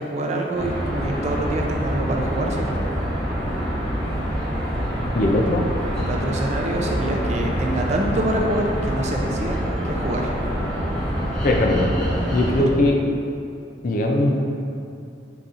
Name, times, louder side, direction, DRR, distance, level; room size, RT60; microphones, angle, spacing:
voice 1, 0.0-2.8 6.0-10.3, right 1 dB, 40° right, 1 dB, 0.4 m, -26 dB
sound 1, 0.5-12.6, equal, 5° left, 0.9 m, -26 dB
voice 2, 5.1-5.6 11.4-11.9 12.3-13.0 13.8-14.4, left 1 dB, 50° left, 1 dB, 0.4 m, -19 dB
4.1 x 4.0 x 2.4 m, 2.5 s
head